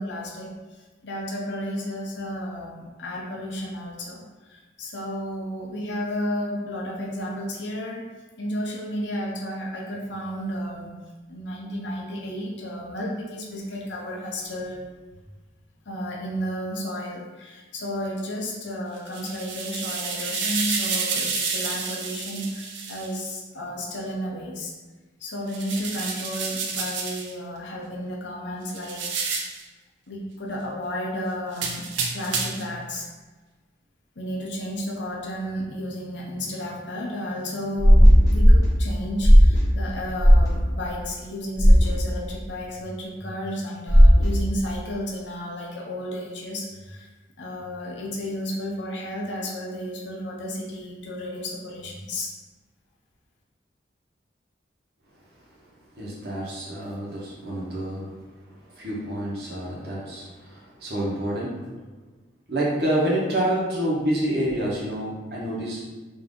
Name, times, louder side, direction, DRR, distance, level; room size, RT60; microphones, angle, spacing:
voice 1, 0.0-8.0 8.4-10.9 11.3-14.8 15.9-24.7 25.2-29.1 30.1-31.9 32.1-33.1 34.2-47.1 47.4-52.3, equal, 80° left, -2 dB, 0.7 m, -32 dB
sound 1, 19.0-23.1 25.5-27.3 28.7-29.6 31.5-32.7, right 5 dB, 90° right, 0.6 m, -30 dB
sound 2, 37.8-38.6 39.2-39.6 40.2-40.5 41.6-41.9 43.9-44.3, equal, 20° left, 1.3 m, -12 dB
voice 2, 56.0-58.1 58.7-61.6 62.5-65.8, right 1 dB, 60° right, -5 dB, 1.2 m, -27 dB
4.0 x 2.8 x 3.7 m, 1.3 s
head